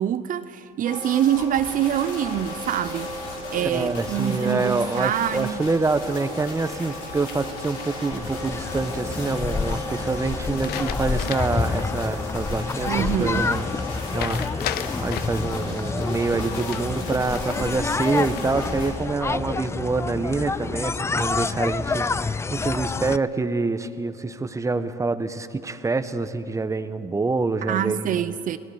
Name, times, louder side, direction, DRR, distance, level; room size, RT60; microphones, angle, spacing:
voice 1, 0.0-3.1 3.5-5.6 12.9-13.5 27.7-28.6, right 10 dB, 50° right, 0.7 m, -25 dB
sound 1, 0.8-18.9, left 2 dB, 85° left, 4.3 m, -35 dB
voice 2, 3.5-13.7 14.1-28.3, right 3 dB, 15° right, 1.1 m, -26 dB
sound 2, 7.3-8.2 10.4-11.7 12.1-12.2 14.2-15.5 16.5-17.7 18.1-18.7, left 11 dB, 65° left, 0.8 m, -35 dB
sound 3, 8.1-23.2, left 4 dB, 15° left, 0.4 m, -28 dB
28.5 x 19.0 x 5.0 m
supercardioid pair, 85°, 18 cm